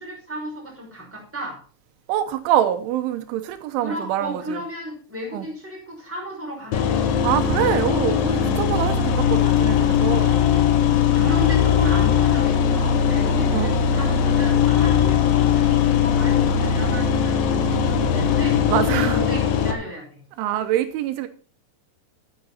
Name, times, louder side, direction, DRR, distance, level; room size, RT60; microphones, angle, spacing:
voice 1, 0.0-1.6 3.8-7.1 10.5-10.7 11.1-20.2, right 1 dB, 5° right, 5.2 m, -34 dB
voice 2, 2.1-4.6 5.3-5.5 7.2-10.4 11.2-11.3 13.2-13.7 18.7-19.2 20.4-21.3, right 11 dB, 85° right, 3.4 m, -25 dB
sound 1, 6.7-19.7, left 7 dB, 70° left, 2.4 m, -19 dB
10.5 x 9.8 x 4.2 m
omnidirectional pair, 5.4 m